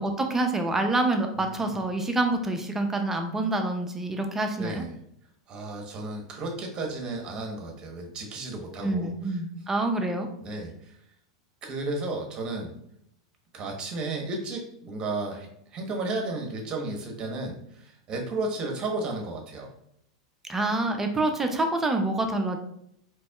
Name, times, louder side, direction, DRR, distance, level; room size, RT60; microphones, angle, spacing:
voice 1, 0.0-4.8 8.8-10.3 20.5-22.6, right 2 dB, 15° right, 5 dB, 0.5 m, -27 dB
voice 2, 1.3-1.8 4.6-4.9 5.5-9.1 10.4-10.9 11.6-12.7 13.5-19.7, right 2 dB, 35° right, 2 dB, 1.0 m, -33 dB
4.1 x 3.1 x 2.3 m, 0.73 s
hypercardioid pair, 100°, 3 cm